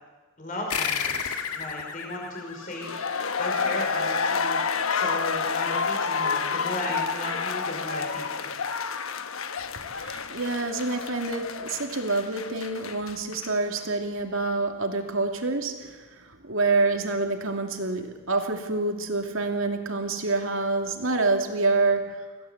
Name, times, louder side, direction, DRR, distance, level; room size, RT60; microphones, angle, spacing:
voice 1, 0.4-2.9 3.4-4.6 4.9-8.5, left 1 dB, 35° left, 0 dB, 5.1 m, -35 dB
sound 1, 0.7-3.7, left 7 dB, 90° left, 2.0 m, -32 dB
sound 2, 2.6-13.5 13.8-13.9, left 5 dB, 70° left, 1.1 m, -29 dB
voice 2, 9.9-22.2, right 3 dB, 65° right, 4 dB, 2.7 m, -27 dB
26.0 x 17.0 x 8.2 m, 1.4 s
head